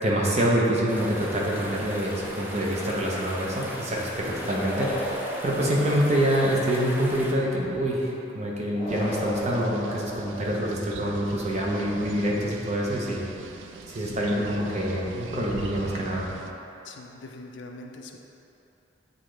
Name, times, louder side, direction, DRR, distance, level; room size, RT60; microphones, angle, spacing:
voice 1, 0.0-13.3 13.9-16.3, equal, 35° right, -3 dB, 0.8 m, -26 dB
sound 1, 0.9-7.3, equal, 10° right, 0.5 m, -38 dB
sound 2, 4.6-6.6 8.7-10.8, equal, 25° left, 0.7 m, -34 dB
sound 3, 8.9-16.5, right 4 dB, 80° right, 0.4 m, -42 dB
voice 2, 14.1-14.4 16.8-18.2, left 2 dB, 70° left, 2 dB, 0.5 m, -43 dB
8.1 x 3.8 x 3.2 m, 2.9 s
head